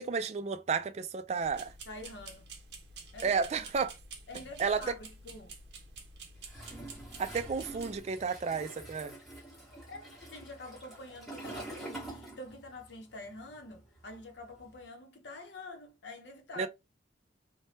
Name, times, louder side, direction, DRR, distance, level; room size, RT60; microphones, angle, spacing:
voice 1, 0.0-1.7 3.2-3.9 4.6-4.8 7.2-9.1 16.6-16.7, right 5 dB, 35° right, 0.3 m, -32 dB
sound 1, 1.4-8.0, right 3 dB, 65° right, 0.7 m, -49 dB
voice 2, 1.9-2.5 3.1-3.7 4.3-5.5 9.5-16.7, left 2 dB, 70° left, 0.7 m, -47 dB
Toilet flush, 6.5-12.9 13.2-14.8, right 1 dB, ahead, 1.2 m, -46 dB
3.2 x 2.1 x 2.7 m
head